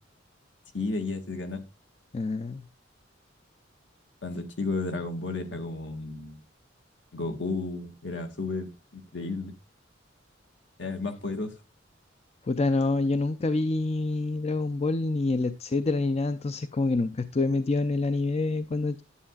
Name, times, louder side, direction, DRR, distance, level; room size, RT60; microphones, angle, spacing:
voice 1, 0.7-1.6 4.2-6.4 7.1-9.5 10.8-11.6, left 3 dB, 65° left, 1.8 m, -33 dB
voice 2, 2.1-2.6 12.4-19.0, left 2 dB, 35° left, 0.4 m, -27 dB
11.5 x 8.2 x 2.3 m
head